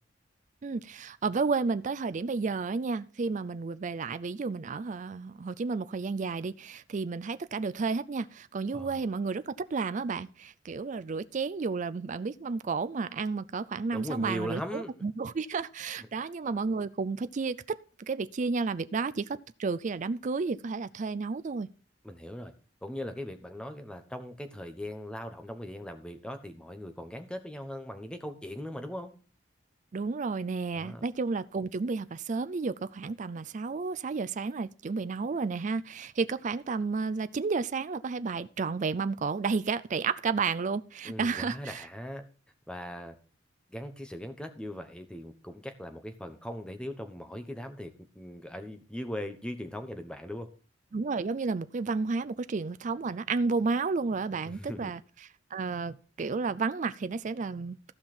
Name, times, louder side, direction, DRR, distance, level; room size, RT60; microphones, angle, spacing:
voice 1, 0.6-21.7 29.9-41.9 50.9-55.0 55.5-57.9, right 4 dB, 40° right, 0.4 m, -32 dB
voice 2, 8.7-9.0 13.9-14.9 16.2-16.3 22.0-22.5 22.8-29.1 30.7-31.0 41.0-42.2 42.7-43.1 43.7-50.5 54.5-54.9, equal, 5° left, 1.1 m, -39 dB
15.0 x 5.7 x 4.3 m
head